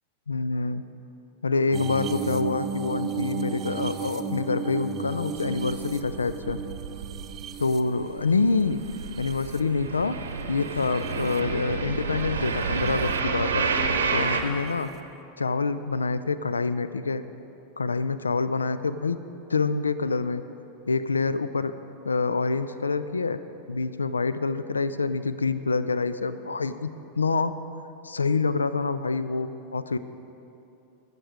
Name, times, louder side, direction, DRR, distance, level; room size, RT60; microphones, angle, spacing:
voice 1, 0.3-0.8 1.4-6.6 7.6-8.8 9.2-10.2 10.5-13.7 14.1-14.9 15.4-17.2 17.8-19.2 19.5-20.4 20.9-21.7 22.0-23.4 23.7-26.9 27.2-27.6 28.0-30.0, left 4 dB, 75° left, 13 dB, 0.4 m, -26 dB
sound 1, 1.7-10.0 10.6-11.4 12.6-12.9 14.7-14.8, right 7 dB, 30° right, 0.6 m, -35 dB
sound 2, 5.4-7.7 8.0-14.4, right 5 dB, 70° right, 0.9 m, -30 dB
17.5 x 6.7 x 4.9 m, 2.8 s
figure-of-eight pair, 90°, 0 cm